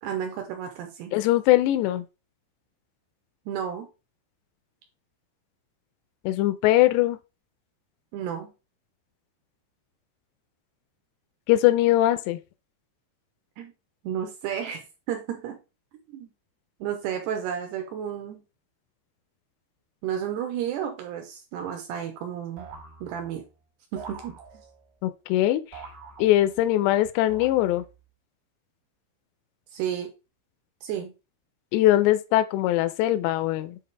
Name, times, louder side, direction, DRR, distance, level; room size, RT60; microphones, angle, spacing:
voice 1, 0.0-1.2 3.5-3.9 8.1-8.5 13.6-13.7 14.0-15.6 16.1-16.3 16.8-18.4 20.0-22.7 23.0-23.4 23.9-24.4 29.7-30.1 30.8-31.1, right 9 dB, 80° right, 2.5 m, -32 dB
voice 2, 1.1-2.1 6.2-7.2 11.5-12.4 25.0-25.8 26.2-27.9 31.7-33.8, left 14 dB, 85° left, 2.5 m, -21 dB
sound 1, 22.6-23.5 24.0-24.9 25.7-26.7 27.3-28.0, right 5 dB, 50° right, 1.0 m, -45 dB
7.5 x 4.2 x 3.3 m
omnidirectional pair, 5.3 m